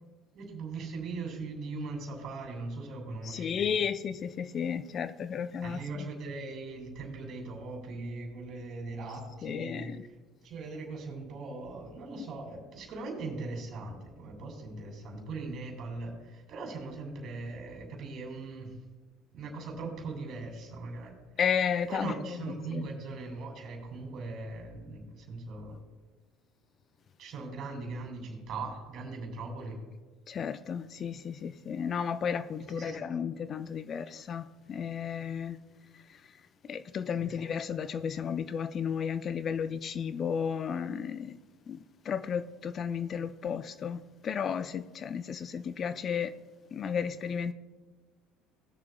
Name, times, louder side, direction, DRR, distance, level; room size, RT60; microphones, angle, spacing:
voice 1, 0.3-3.6 5.6-9.9 10.4-18.7 19.3-21.2 21.9-25.8 27.2-29.8 32.6-33.0 37.2-37.3, right 3 dB, 55° right, 2.8 m, -40 dB
voice 2, 3.2-6.1 9.4-10.0 21.4-22.9 30.3-35.6 36.7-41.4 41.7-41.8 42.0-46.3 46.7-47.5, left 7 dB, 45° left, 0.4 m, -33 dB
19.5 x 6.8 x 2.3 m
hypercardioid pair, 70°, 0 cm